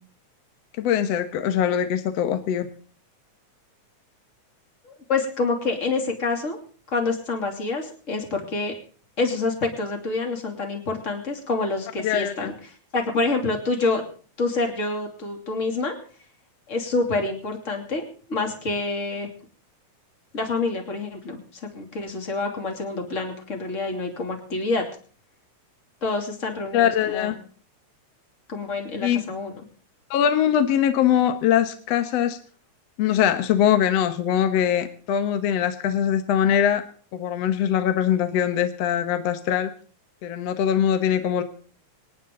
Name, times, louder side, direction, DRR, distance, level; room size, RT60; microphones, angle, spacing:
voice 1, 0.8-2.7 12.0-12.5 26.7-27.4 29.0-29.2 30.1-32.4 33.0-36.8 37.1-39.7 40.2-41.4, left 9 dB, 65° left, 9 dB, 2.1 m, -22 dB
voice 2, 4.8-6.6 6.9-8.7 9.2-12.5 12.9-14.0 14.4-15.9 16.7-18.0 18.3-19.3 20.3-24.8 26.0-27.4 28.5-29.6, left 3 dB, 25° left, 3 dB, 2.9 m, -27 dB
25.0 x 11.5 x 3.9 m, 0.43 s
omnidirectional pair, 3.4 m